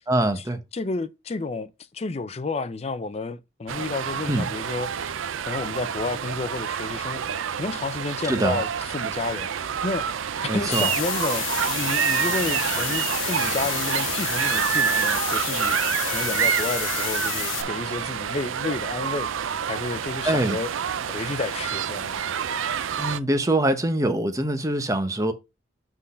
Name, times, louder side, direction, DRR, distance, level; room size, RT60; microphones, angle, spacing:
voice 1, 0.1-0.6 4.3-4.5 8.3-8.6 10.5-10.9 20.2-20.6 23.0-25.3, right 1 dB, 15° right, 0.8 m, -23 dB
voice 2, 0.7-5.1 5.5-10.1 10.5-20.7 21.1-22.2, left 3 dB, 30° left, 0.4 m, -31 dB
sound 1, 3.7-23.2, right 8 dB, 85° right, 0.5 m, -28 dB
sound 2, 10.7-17.6, left 10 dB, 85° left, 1.0 m, -30 dB
6.1 x 3.8 x 5.4 m
head